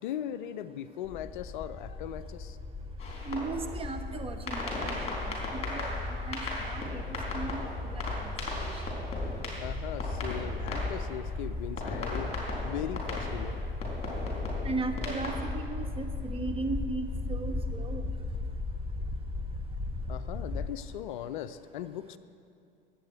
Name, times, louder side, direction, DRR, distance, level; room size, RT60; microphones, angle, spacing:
voice 1, 0.0-2.6 9.6-12.3 12.6-13.6 20.1-22.2, left 11 dB, 55° left, 14 dB, 0.5 m, -38 dB
sound 1, 1.0-20.7, left 3 dB, 5° left, 0.7 m, -36 dB
sound 2, 3.0-3.8 4.5-11.3 11.8-15.4, left 2 dB, 20° left, 3.8 m, -38 dB
voice 2, 3.3-5.4 5.7-8.3 8.6-8.7 14.6-18.0, right 3 dB, 20° right, 6 dB, 1.1 m, -37 dB
20.5 x 8.4 x 4.6 m, 2.6 s
figure-of-eight pair, 80°, 29 cm